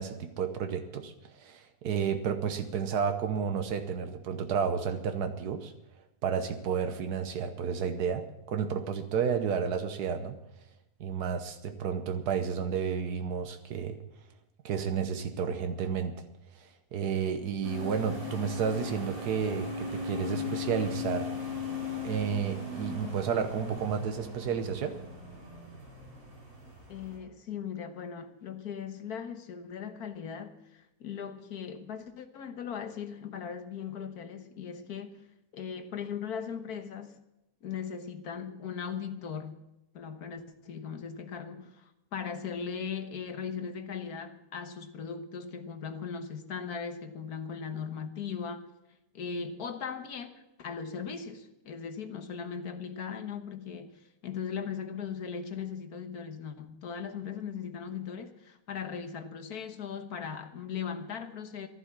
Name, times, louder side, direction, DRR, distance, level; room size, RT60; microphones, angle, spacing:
voice 1, 0.0-5.7 6.2-10.4 11.0-14.0 14.6-16.2 16.6-21.5 22.0-25.0, right 7 dB, 90° right, 1.6 m, -31 dB
sound 1, 17.6-27.2, left 4 dB, 65° right, 4.6 m, -38 dB
voice 2, 26.9-35.2 35.5-37.2 37.6-39.6 39.9-48.7 49.1-61.7, left 6 dB, 75° left, 1.7 m, -38 dB
14.0 x 12.0 x 7.3 m
omnidirectional pair, 1.6 m